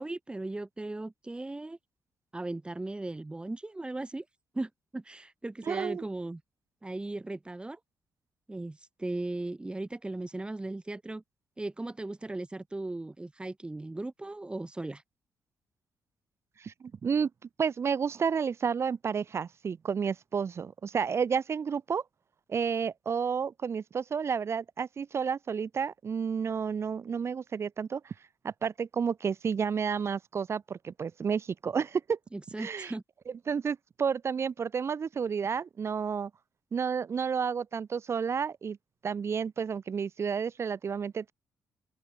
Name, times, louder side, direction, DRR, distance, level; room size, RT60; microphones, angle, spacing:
voice 1, 0.0-1.8 2.3-4.2 4.5-6.4 6.8-7.8 8.5-11.2 11.6-15.0 32.3-33.0, right 2 dB, 15° right, 4.9 m, -37 dB
voice 2, 5.6-6.0 16.6-17.3 17.6-22.0 22.5-28.1 28.4-32.2 32.6-32.9 33.5-36.3 36.7-38.8 39.0-41.3, right 6 dB, 45° right, 1.4 m, -31 dB
open air
cardioid pair, 90°, 6 cm